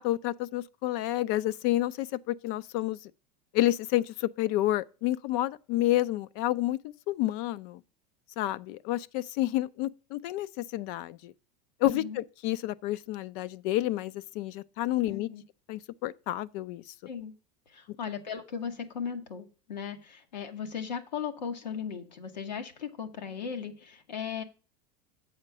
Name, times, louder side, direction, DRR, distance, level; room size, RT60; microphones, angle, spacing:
voice 1, 0.0-3.0 3.5-7.8 8.4-11.3 11.8-15.3 15.7-16.8, left 15 dB, 55° left, 0.5 m, -29 dB
voice 2, 11.9-12.2 15.1-15.4 17.1-17.3 17.7-24.4, left 7 dB, 90° left, 1.2 m, -37 dB
8.1 x 4.3 x 6.6 m
hypercardioid pair, 90°, 21 cm